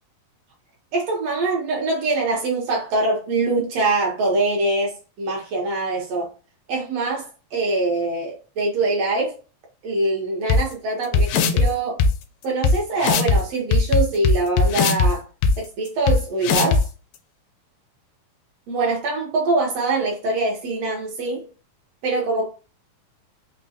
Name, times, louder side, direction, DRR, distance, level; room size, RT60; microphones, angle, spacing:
voice 1, 0.9-6.3 6.7-9.4 9.8-12.0 12.4-15.2 15.6-16.9 18.7-21.4 22.0-22.5, right 2 dB, 70° right, 1.5 m, -23 dB
sound 1, 10.5-10.6 11.1-11.7 12.0-12.1 12.6-12.7 13.0-13.4 13.7-15.1 15.4-15.5 16.1-16.2 16.4-16.8, left 4 dB, 90° left, 2.3 m, -17 dB
5.4 x 2.1 x 2.7 m
omnidirectional pair, 3.8 m